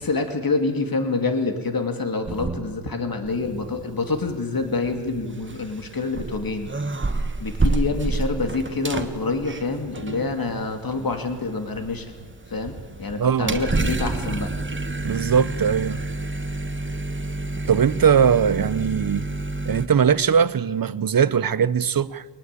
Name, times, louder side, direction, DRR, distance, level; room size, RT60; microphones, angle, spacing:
voice 1, 0.0-6.7 7.4-12.1 12.5-14.5, left 3 dB, 50° left, 2.8 m, -26 dB
sound 1, 2.3-3.0 3.3-19.9, right 2 dB, 25° right, 1.5 m, -30 dB
voice 2, 13.2-13.6 15.0-16.0 17.7-19.3 19.7-22.2, right 7 dB, 50° right, 0.8 m, -20 dB
23.5 x 19.5 x 8.5 m
wide cardioid pair, 95°, 44 cm